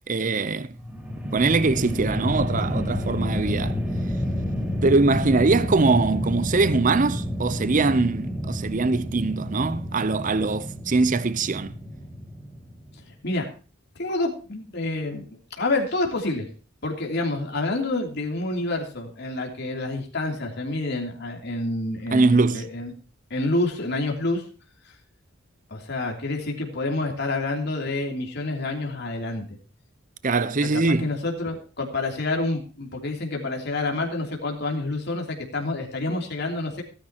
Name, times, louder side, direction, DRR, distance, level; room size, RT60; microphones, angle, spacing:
voice 1, 0.1-0.7 1.3-3.8 4.8-11.7 22.1-22.6 30.2-31.1, right 3 dB, 40° right, 0.6 m, -22 dB
sound 1, 0.7-13.1, equal, 5° right, 1.6 m, -29 dB
voice 2, 13.1-13.5 14.0-16.5 16.8-22.9 23.3-24.4 24.8-24.9 25.7-29.6 30.7-36.8, left 2 dB, 50° left, 3.0 m, -28 dB
18.0 x 10.0 x 2.9 m
head